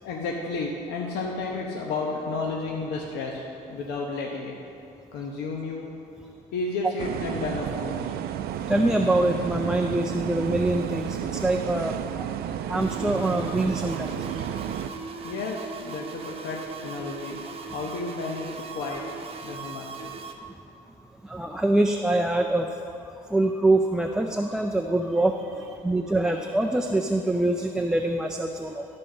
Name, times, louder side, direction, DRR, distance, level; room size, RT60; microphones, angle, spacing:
voice 1, 0.0-4.5 5.1-5.9 6.5-8.2 15.2-17.4 17.7-19.0 19.4-20.1, left 3 dB, 80° left, -1 dB, 0.9 m, -32 dB
sound 1, 7.0-14.9, right 10 dB, 65° right, 0.4 m, -32 dB
voice 2, 8.7-12.3 12.7-14.4 21.3-22.7 23.3-28.9, right 2 dB, 5° right, 3 dB, 0.4 m, -24 dB
sound 2, 12.8-20.3, right 4 dB, 35° right, 0.9 m, -39 dB
13.0 x 4.4 x 6.4 m, 2.7 s
cardioid pair, 110°, 17 cm